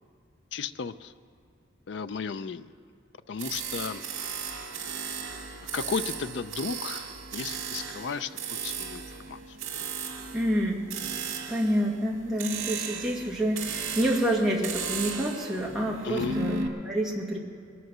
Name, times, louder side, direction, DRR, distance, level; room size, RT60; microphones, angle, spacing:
voice 1, 0.5-1.1 1.9-2.7 3.3-4.1 5.7-8.3 8.6-9.6 16.0-16.4, left 5 dB, 60° left, 12 dB, 0.4 m, -34 dB
sound 1, 3.4-16.7, right 5 dB, 85° right, 2.1 m, -36 dB
voice 2, 10.3-10.8 11.5-17.4, equal, ahead, -4 dB, 1.8 m, -28 dB
22.0 x 8.0 x 6.1 m, 2.4 s
head